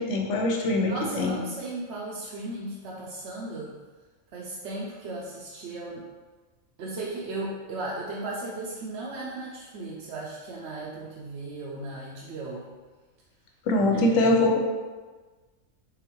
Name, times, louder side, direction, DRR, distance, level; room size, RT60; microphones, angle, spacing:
voice 1, 0.0-1.4 13.7-14.6, left 2 dB, 70° left, 1 dB, 0.9 m, -23 dB
voice 2, 0.8-3.7 4.3-6.1 6.8-12.7 13.9-14.4, right 2 dB, 65° right, -4 dB, 0.8 m, -36 dB
3.8 x 3.5 x 3.0 m, 1.3 s
omnidirectional pair, 1.4 m